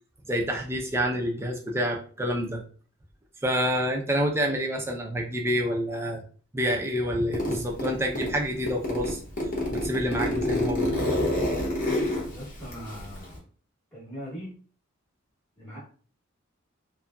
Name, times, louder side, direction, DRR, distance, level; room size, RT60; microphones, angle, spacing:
voice 1, 0.3-2.6 3.4-6.2 6.5-9.2 9.7-11.0, equal, 15° right, 1 dB, 0.5 m, -28 dB
Zipper (clothing), 7.3-8.3 8.7-13.4, left 1 dB, 40° left, 0.8 m, -28 dB
voice 2, 12.3-13.4 13.9-14.5 15.6-15.8, equal, 10° left, -9 dB, 0.9 m, -40 dB
2.7 x 2.6 x 2.3 m, 0.42 s
head